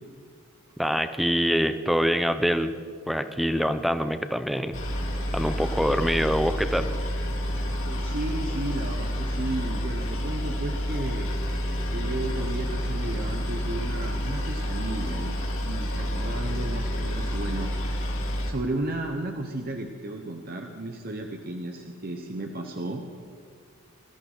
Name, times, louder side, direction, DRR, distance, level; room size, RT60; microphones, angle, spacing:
voice 1, 0.8-2.7 3.1-4.8 5.3-6.9, equal, ahead, 9 dB, 0.6 m, -25 dB
Boat Water vehicle, 4.7-18.5, equal, 65° left, 3.1 m, -29 dB
voice 2, 7.8-11.4 11.9-18.1 18.5-23.1, right 2 dB, 45° right, 3 dB, 0.9 m, -34 dB
21.0 x 13.0 x 3.9 m, 2.1 s
head